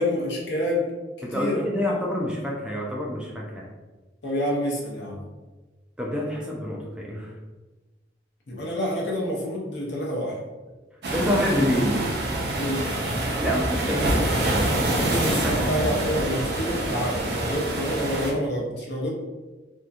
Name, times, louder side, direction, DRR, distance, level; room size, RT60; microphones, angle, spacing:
voice 1, 0.0-1.7 4.2-5.2 8.5-10.4 12.5-12.9 15.0-19.1, equal, 75° left, -3 dB, 0.7 m, -28 dB
voice 2, 1.2-3.7 6.0-7.3 11.1-12.1 13.4-14.4 15.3-15.6, equal, 5° right, -3 dB, 0.3 m, -27 dB
sound 1, 11.0-18.3, right 1 dB, 65° right, 0.6 m, -26 dB
2.7 x 2.5 x 2.3 m, 1.2 s
head